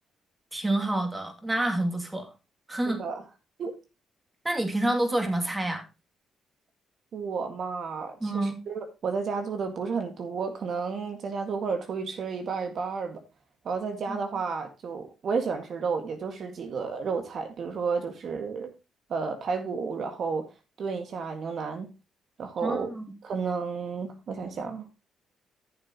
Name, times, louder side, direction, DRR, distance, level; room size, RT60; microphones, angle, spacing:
voice 1, 0.5-2.3 2.7-3.0 4.4-5.8 8.2-8.6 14.1-14.2 22.6-23.0, right 1 dB, 15° right, 2.6 m, -28 dB
voice 2, 2.9-3.2 3.6-3.7 7.1-13.2 13.7-18.7 19.1-20.4 20.8-21.9 22.4-22.9 23.2-24.9, right 5 dB, 60° right, 1.9 m, -32 dB
13.5 x 7.4 x 3.0 m
cardioid pair, 90°, 0 cm